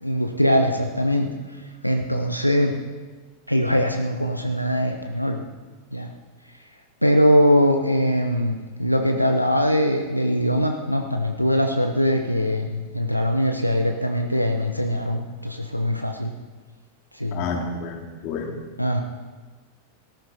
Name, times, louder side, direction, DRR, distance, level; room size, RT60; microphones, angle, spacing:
voice 1, 0.0-1.3 1.8-2.7 3.5-5.4 5.9-6.1 7.0-16.3 17.1-17.4 18.8-19.0, equal, 90° left, 4 dB, 1.0 m, -22 dB
voice 2, 17.3-18.5, left 4 dB, 40° left, 3 dB, 2.6 m, -29 dB
18.0 x 14.0 x 4.4 m, 1.4 s
figure-of-eight pair, 90°, 0 cm